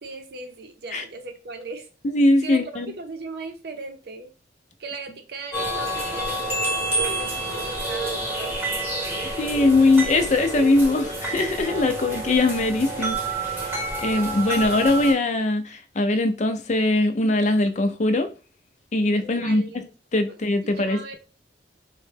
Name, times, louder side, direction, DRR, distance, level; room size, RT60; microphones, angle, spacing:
voice 1, 0.0-1.9 2.4-4.3 4.8-8.6 19.2-19.8 20.3-21.2, right 3 dB, 60° right, 0.6 m, -38 dB
voice 2, 2.1-2.9 9.2-13.2 13.5-18.3 18.9-19.8 20.1-21.1, left 2 dB, 40° left, 0.4 m, -21 dB
sound 1, 5.5-15.1, right 2 dB, 10° right, 0.9 m, -28 dB
3.8 x 2.1 x 3.2 m
head